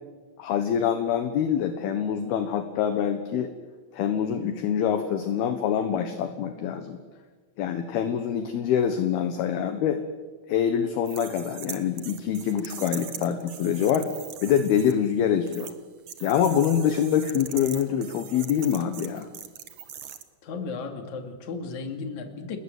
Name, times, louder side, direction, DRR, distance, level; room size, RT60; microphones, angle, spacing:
voice 1, 0.4-3.5 3.9-7.0 7.6-10.0 10.5-14.1 14.4-15.7 16.2-19.3, left 8 dB, 70° left, 7 dB, 3.0 m, -25 dB
sound 1, 11.0-14.9 15.5-15.7 16.1-20.2, right 9 dB, 75° right, 1.4 m, -41 dB
voice 2, 20.4-22.6, left 4 dB, 45° left, 5 dB, 3.4 m, -35 dB
30.0 x 20.5 x 8.0 m, 1.4 s
omnidirectional pair, 5.2 m